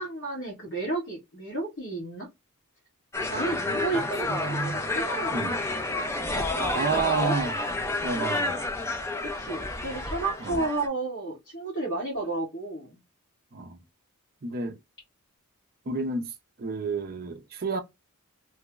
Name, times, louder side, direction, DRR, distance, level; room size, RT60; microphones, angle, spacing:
voice 1, 0.0-2.3 3.2-5.3 6.3-7.4 9.2-13.0, right 2 dB, 55° left, 1.6 m, -32 dB
sound 1, 3.1-10.9, left 2 dB, 10° left, 0.4 m, -30 dB
voice 2, 3.9-4.8 5.3-5.6 6.7-7.6 8.0-8.6 10.5-10.6 13.5-13.8 14.4-14.8 15.9-16.3 16.6-17.8, right 4 dB, 40° right, 0.5 m, -30 dB
3.1 x 2.1 x 3.6 m
head